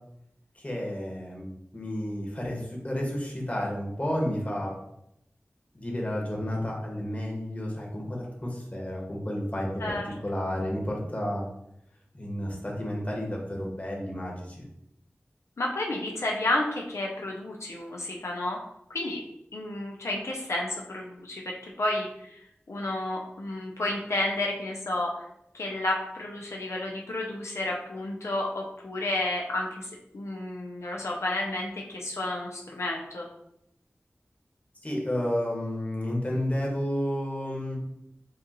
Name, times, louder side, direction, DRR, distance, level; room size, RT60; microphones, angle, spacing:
voice 1, 0.6-1.5 1.7-4.7 5.7-11.4 12.1-14.6 34.8-37.8, left 1 dB, 30° left, -2 dB, 1.5 m, -31 dB
voice 2, 9.8-10.5 15.6-18.6 18.9-19.2 19.5-22.4 22.7-25.3 25.5-29.9 30.1-33.3, left 1 dB, 85° left, -1 dB, 0.6 m, -31 dB
7.2 x 2.5 x 3.0 m, 0.79 s
wide cardioid pair, 45°, 5 cm